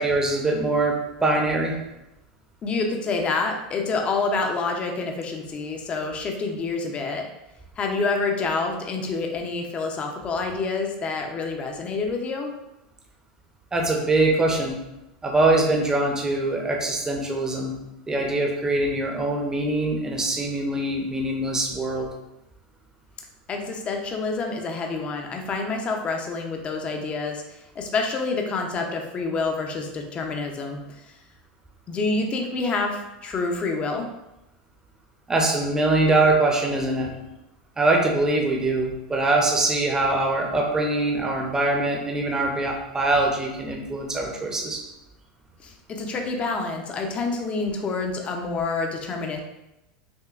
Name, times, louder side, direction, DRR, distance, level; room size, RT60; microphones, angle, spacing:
voice 1, 0.0-1.7 13.7-14.8 15.2-17.7 18.1-22.1 35.3-37.1 37.8-44.8, right 2 dB, 15° right, 0 dB, 0.8 m, -23 dB
voice 2, 2.6-7.3 7.8-12.5 23.5-31.1 31.9-34.1 45.6-49.4, left 3 dB, 30° left, 2 dB, 0.6 m, -27 dB
6.2 x 2.2 x 2.4 m, 0.94 s
supercardioid pair, 115°, 4 cm